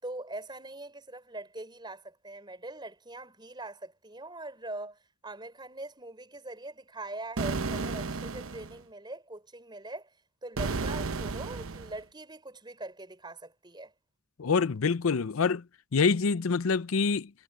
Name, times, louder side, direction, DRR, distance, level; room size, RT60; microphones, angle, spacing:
voice 1, 0.0-10.1 10.4-13.9, right 2 dB, 20° right, 5.0 m, -42 dB
sound 1, 7.4-8.8 10.6-12.0, right 4 dB, 90° right, 0.9 m, -33 dB
voice 2, 14.4-15.6 15.9-17.3, left 5 dB, 90° left, 0.6 m, -26 dB
head